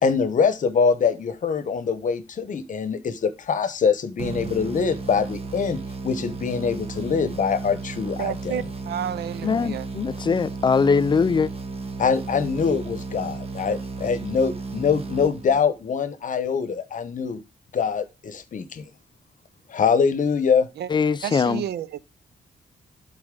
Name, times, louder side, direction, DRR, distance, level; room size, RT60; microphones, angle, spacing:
voice 1, 0.0-8.7 12.0-17.4 17.7-18.8 19.7-20.7, left 6 dB, 50° left, 0.9 m, -24 dB
sound 1, 4.2-15.9, right 4 dB, 35° right, 1.3 m, -34 dB
voice 2, 8.2-9.9 21.2-22.0, right 10 dB, 90° right, 0.5 m, -30 dB
voice 3, 9.4-11.5 20.9-21.7, left 5 dB, 30° left, 0.4 m, -21 dB
11.0 x 4.1 x 3.7 m
cardioid pair, 115°, 17 cm